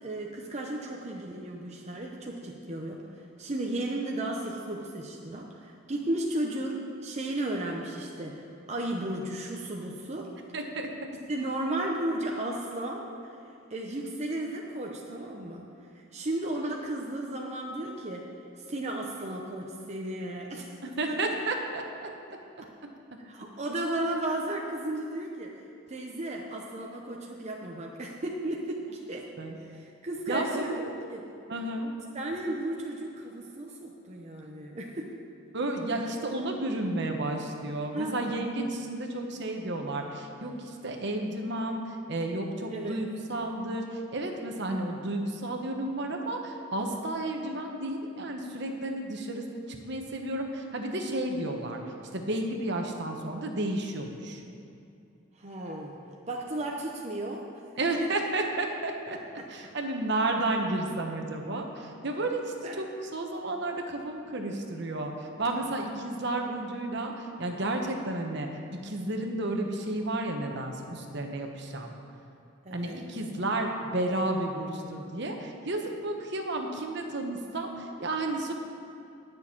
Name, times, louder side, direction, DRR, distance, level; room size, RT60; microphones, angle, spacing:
voice 1, 0.0-3.0 3.4-10.3 11.3-13.0 13.7-15.6 15.9-18.2 18.6-20.7 21.1-21.4 23.3-25.5 25.9-29.3 29.6-31.2 32.1-35.1 37.9-38.2 42.7-43.0 55.4-56.0 56.3-57.5 59.4-59.5 62.6-62.8 72.6-73.0, right 1 dB, 35° right, -1 dB, 0.8 m, -34 dB
voice 2, 10.5-10.9 21.0-22.1 29.4-29.6 30.3-30.8 31.5-31.9 35.5-51.8 52.1-54.4 57.8-59.2 59.5-68.5 68.8-71.9 72.7-78.5, right 2 dB, 60° right, 3 dB, 1.2 m, -32 dB
10.0 x 6.4 x 8.6 m, 2.6 s
head